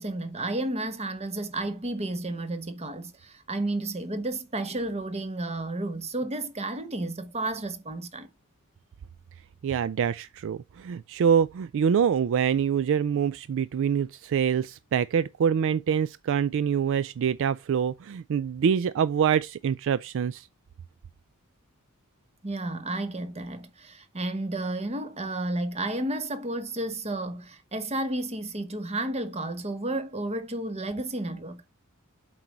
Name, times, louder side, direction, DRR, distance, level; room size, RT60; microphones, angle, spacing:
voice 1, 0.0-8.3 22.4-31.7, right 2 dB, 30° right, 1.1 m, -32 dB
voice 2, 9.6-20.5, right 7 dB, 60° right, 0.3 m, -25 dB
7.8 x 4.7 x 4.2 m
head